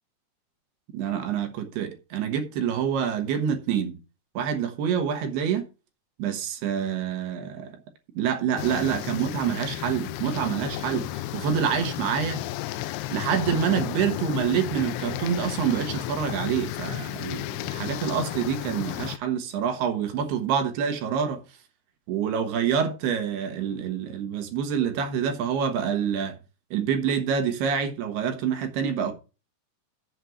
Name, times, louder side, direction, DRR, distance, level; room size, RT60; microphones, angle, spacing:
voice 1, 0.9-4.0 4.3-5.6 6.2-7.7 8.1-12.4 13.1-21.4 22.1-26.4 26.7-29.1, right 8 dB, 70° right, 3.1 m, -27 dB
sound 1, 8.6-19.2, left 15 dB, 85° left, 2.2 m, -33 dB
7.8 x 6.4 x 7.0 m
omnidirectional pair, 5.2 m